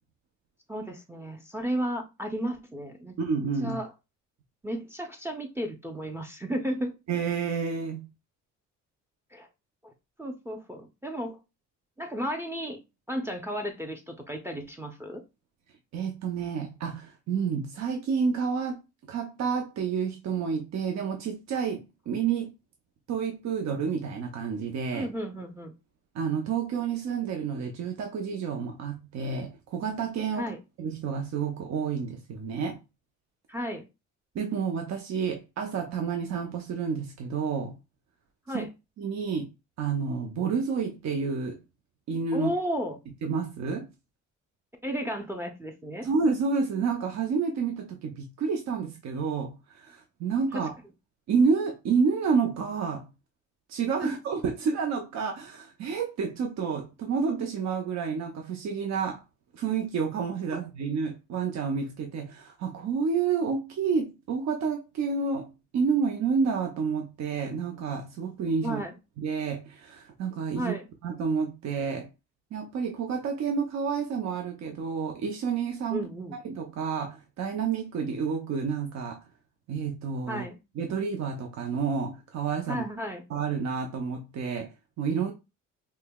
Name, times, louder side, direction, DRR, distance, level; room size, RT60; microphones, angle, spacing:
voice 1, 0.7-3.2 3.6-3.9 4.6-7.0 9.3-9.5 9.8-9.9 10.2-11.4 12.0-12.8 13.1-15.2 24.9-25.7 30.3-30.6 33.5-33.9 38.5-38.7 42.3-43.0 44.8-46.1 50.5-50.6 54.0-54.1 68.6-69.0 70.5-70.9 75.9-76.4 80.3-80.6 82.7-83.2, equal, 10° right, 0.5 m, -33 dB
voice 2, 3.2-3.8 7.1-8.1 15.9-18.8 19.1-22.5 23.1-25.1 26.1-30.5 30.8-32.8 34.3-37.8 38.5-38.6 39.0-39.5 39.8-41.6 42.1-42.5 43.2-43.9 46.0-50.7 51.3-53.1 53.7-59.2 59.5-68.8 69.2-70.7 71.0-72.1 72.5-76.1 76.4-79.2 79.7-80.4 80.8-82.8 83.3-85.3, right 5 dB, 65° right, 0.7 m, -29 dB
5.3 x 2.1 x 2.2 m
cardioid pair, 90°, 30 cm